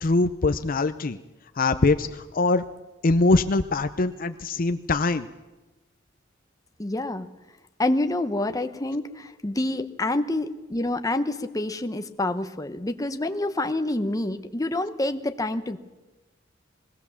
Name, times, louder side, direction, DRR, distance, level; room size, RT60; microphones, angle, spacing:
voice 1, 0.0-1.2 1.6-2.6 3.0-5.3, left 3 dB, 45° left, 8 dB, 0.6 m, -22 dB
voice 2, 6.8-7.3 7.8-15.8, left 2 dB, 20° left, 7 dB, 1.0 m, -27 dB
21.0 x 17.5 x 7.2 m, 1.1 s
head